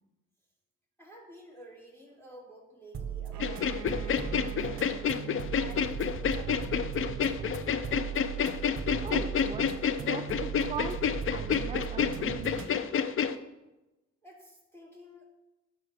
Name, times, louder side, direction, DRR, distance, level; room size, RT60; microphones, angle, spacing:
voice 1, 1.0-5.1 5.6-7.4 14.2-15.3, equal, 10° left, -3 dB, 2.8 m, -52 dB
sound 1, 2.9-12.7, right 7 dB, 45° right, 0.9 m, -37 dB
Bowed string instrument, 3.3-7.0, right 12 dB, 65° right, 0.6 m, -47 dB
sound 2, 3.4-13.3, left 7 dB, 45° left, 0.4 m, -29 dB
voice 2, 9.0-9.7 10.0-12.9, right 6 dB, 20° right, 7 dB, 0.4 m, -40 dB
13.0 x 4.5 x 3.4 m, 1.0 s
cardioid pair, 90°, 30 cm